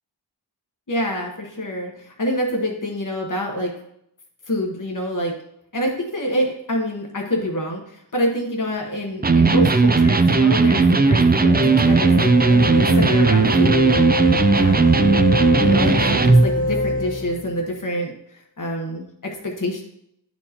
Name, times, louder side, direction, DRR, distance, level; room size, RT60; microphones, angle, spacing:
voice 1, 0.9-3.7 4.5-5.3 5.7-15.0 15.6-18.1 18.6-19.8, equal, 45° left, 0 dB, 1.2 m, -26 dB
Electric guitar, 9.2-16.5, right 4 dB, 25° right, 0.4 m, -16 dB
sound 1, 11.5-17.6, left 2 dB, 20° left, 1.5 m, -25 dB
11.0 x 4.5 x 2.9 m, 0.76 s
wide cardioid pair, 45°, 44 cm